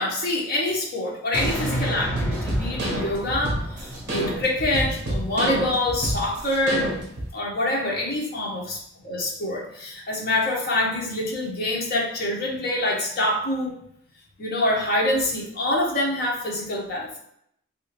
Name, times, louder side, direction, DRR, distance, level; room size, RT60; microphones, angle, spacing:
voice 1, 0.0-6.9 7.3-13.7 14.4-17.2, left 1 dB, 45° left, -3 dB, 0.9 m, -26 dB
sound 1, 1.3-6.4 6.9-7.0, equal, 5° left, 0.6 m, -32 dB
sound 2, 2.1-7.3, right 1 dB, 50° right, 0.7 m, -28 dB
2.9 x 2.6 x 2.9 m, 0.71 s
head